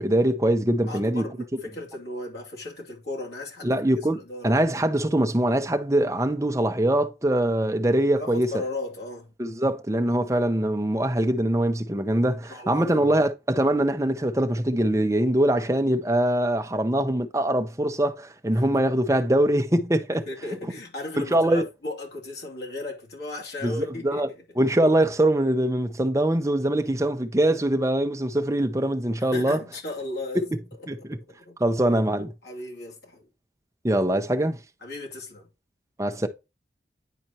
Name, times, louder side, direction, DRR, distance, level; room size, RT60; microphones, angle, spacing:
voice 1, 0.0-1.2 3.6-8.5 9.4-20.2 21.3-21.6 23.6-24.3 24.6-29.6 30.9-31.0 31.6-32.3 33.8-34.6 36.0-36.3, right 1 dB, 15° right, 0.6 m, -23 dB
voice 2, 0.9-4.5 8.2-9.3 12.5-13.2 16.5-16.7 18.5-18.7 20.1-24.4 29.3-30.4 30.8-31.6 31.9-32.0 32.4-33.3 34.8-35.5, left 2 dB, 70° left, 2.7 m, -36 dB
10.0 x 4.3 x 2.8 m
head